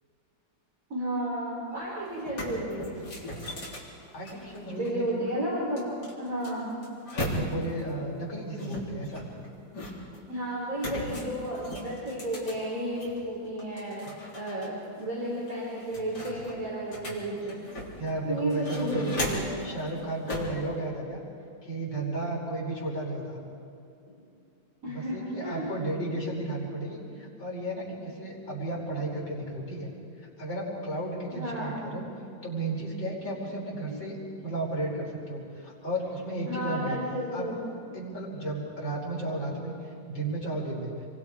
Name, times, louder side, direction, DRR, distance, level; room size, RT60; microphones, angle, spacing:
voice 1, 0.9-2.9 4.8-6.7 10.3-17.7 18.2-19.7 24.8-25.7 31.3-31.8 33.9-34.0 34.4-34.5 36.4-37.5 37.9-38.1, right 1 dB, 45° right, -6 dB, 4.6 m, -33 dB
sound 1, 1.7-1.8 2.1-4.9 5.8-7.8 8.6-10.2 10.8-13.2 13.6-14.7 15.0-15.1 15.5-18.1 18.5-19.6 20.3-20.6, left 1 dB, 60° left, 4.4 m, -37 dB
voice 2, 4.1-5.2 7.2-9.3 11.0-11.2 14.0-14.2 18.0-19.2 19.6-21.2 21.6-23.4 24.8-29.9 30.4-32.1 32.4-37.0 37.3-37.5 37.9-39.7 40.0-40.9, right 1 dB, 85° left, -4 dB, 5.9 m, -33 dB
28.5 x 23.5 x 5.0 m, 2.6 s
omnidirectional pair, 2.0 m